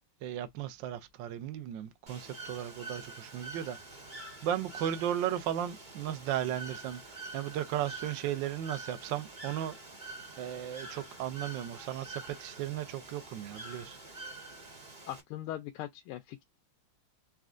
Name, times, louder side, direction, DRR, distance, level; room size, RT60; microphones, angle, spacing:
voice 1, 0.2-3.8 4.4-9.8 10.4-14.0, right 11 dB, 70° right, 1.2 m, -35 dB
Bird / Water, 2.1-15.2, right 3 dB, 30° right, 1.0 m, -46 dB
voice 2, 15.1-16.4, left 13 dB, 85° left, 1.5 m, -40 dB
4.3 x 3.5 x 2.5 m
omnidirectional pair, 2.4 m